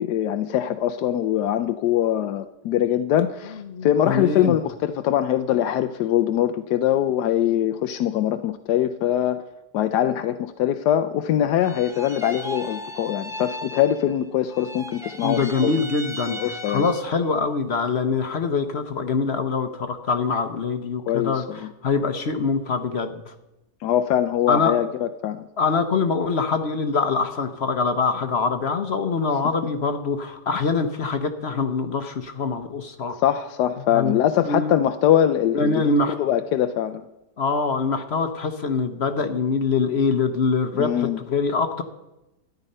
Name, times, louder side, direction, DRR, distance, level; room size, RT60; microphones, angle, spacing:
voice 1, 0.0-9.4 9.7-15.8 16.3-16.9 21.1-21.7 23.8-25.4 33.2-37.0 40.7-41.2, left 11 dB, 80° left, 9 dB, 1.1 m, -23 dB
voice 2, 3.7-4.6 15.2-23.3 24.5-24.8 25.6-33.2 33.9-34.2 34.5-34.8 35.5-36.1 37.4-41.8, left 4 dB, 50° left, 8 dB, 0.9 m, -24 dB
sound 1, 11.6-14.2 14.5-17.2, equal, 5° right, 0.6 m, -36 dB
13.0 x 10.0 x 5.4 m, 0.96 s
omnidirectional pair, 1.8 m